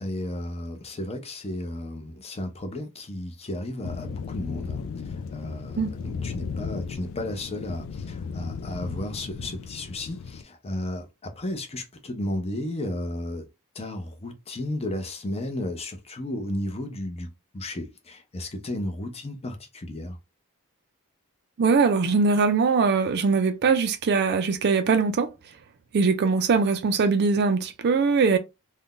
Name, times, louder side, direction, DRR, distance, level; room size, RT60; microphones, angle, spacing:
voice 1, 0.0-13.5 13.7-20.2, left 1 dB, 30° left, 0.6 m, -33 dB
sound 1, 3.8-10.4, left 5 dB, 65° left, 0.3 m, -35 dB
voice 2, 21.6-25.3 25.9-28.4, right 4 dB, 50° right, 0.4 m, -21 dB
2.6 x 2.2 x 3.6 m
head